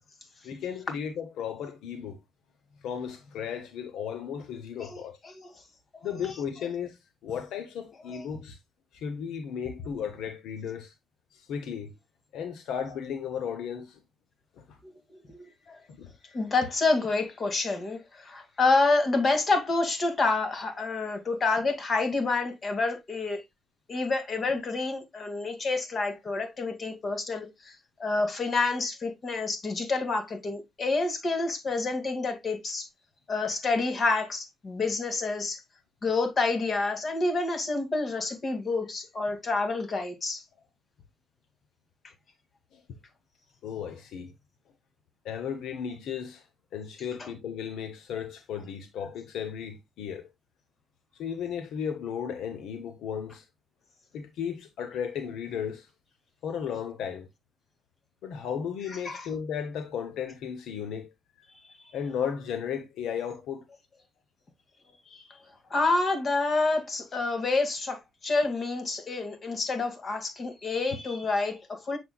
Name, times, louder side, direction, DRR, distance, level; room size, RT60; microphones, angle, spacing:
voice 1, 0.4-2.2 2.8-5.2 6.0-8.6 8.9-10.9 11.3-11.9 12.3-14.0 14.6-14.8 15.9-16.1 42.7-42.8 43.6-44.3 45.2-46.4 46.7-50.3 51.1-53.4 54.1-55.9 56.4-57.3 58.2-61.1 61.9-63.6, left 8 dB, 80° left, 0.8 m, -35 dB
voice 2, 16.3-23.4 23.9-27.7 28.0-32.9 33.3-35.6 36.0-40.4 47.2-47.3 58.9-59.3 65.7-72.0, left 3 dB, 40° left, 2.1 m, -28 dB
6.8 x 6.3 x 2.3 m
cardioid pair, 90°, 0 cm